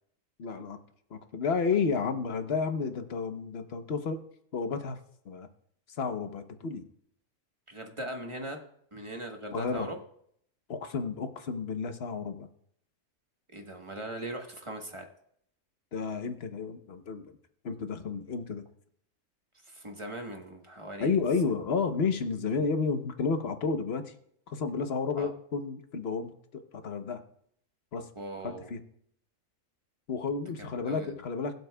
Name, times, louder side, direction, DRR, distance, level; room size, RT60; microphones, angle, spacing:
voice 1, 0.4-0.8 1.1-4.2 4.5-5.5 5.9-6.8 9.5-9.9 10.7-12.5 15.9-17.3 17.6-18.6 21.0-24.1 24.5-27.2 27.9-28.1 28.4-28.8 30.1-31.5, left 5 dB, 45° left, 8 dB, 1.0 m, -31 dB
voice 2, 7.7-8.6 8.9-10.0 13.5-15.1 19.7-21.2 25.2-25.3 28.2-28.7 30.6-31.1, right 1 dB, 20° right, 3 dB, 1.1 m, -40 dB
21.5 x 8.0 x 2.3 m, 0.68 s
omnidirectional pair, 1.6 m